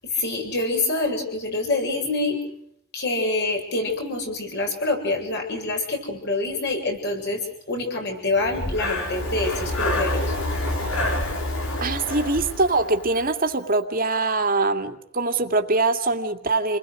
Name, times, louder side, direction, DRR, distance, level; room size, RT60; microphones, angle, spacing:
voice 1, 0.0-2.4 2.9-10.3, left 2 dB, 50° left, 2 dB, 7.7 m, -26 dB
Breathing, 8.4-13.4, left 1 dB, 75° left, 5.8 m, -27 dB
voice 2, 11.8-16.8, right 3 dB, 45° right, 6 dB, 2.3 m, -23 dB
29.5 x 21.0 x 6.4 m, 0.70 s
head